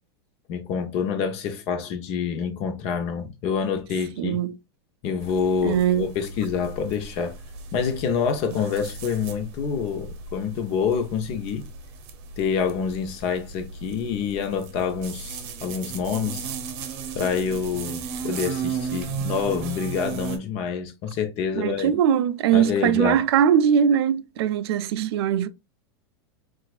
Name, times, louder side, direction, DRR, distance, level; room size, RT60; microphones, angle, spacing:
voice 1, 0.5-4.4 5.0-7.4 7.7-11.7 12.4-16.5 17.1-21.9 22.5-23.2, left 6 dB, 50° left, 0.8 m, -27 dB
voice 2, 4.2-4.5 5.6-6.1 21.5-25.5, right 9 dB, 70° right, 0.4 m, -21 dB
sound 1, 5.2-20.4, right 5 dB, 55° right, 0.8 m, -36 dB
4.1 x 2.4 x 2.3 m
hypercardioid pair, 120°, 14 cm